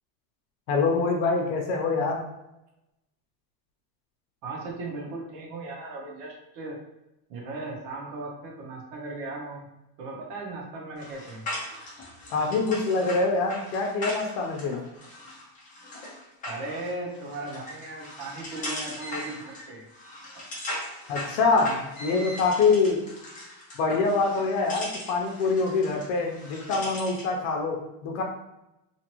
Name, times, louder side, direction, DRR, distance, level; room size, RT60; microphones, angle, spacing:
voice 1, 0.7-2.2 12.3-14.8 21.1-23.0 23.8-28.2, left 4 dB, 85° left, 1 dB, 0.7 m, -25 dB
voice 2, 4.4-6.8 7.3-9.7 10.0-11.4 16.4-19.9, right 2 dB, 65° right, -1 dB, 0.9 m, -37 dB
sound 1, 11.0-27.3, left 1 dB, 20° left, 0.5 m, -39 dB
2.8 x 2.5 x 2.9 m, 0.91 s
cardioid pair, 175°, 46 cm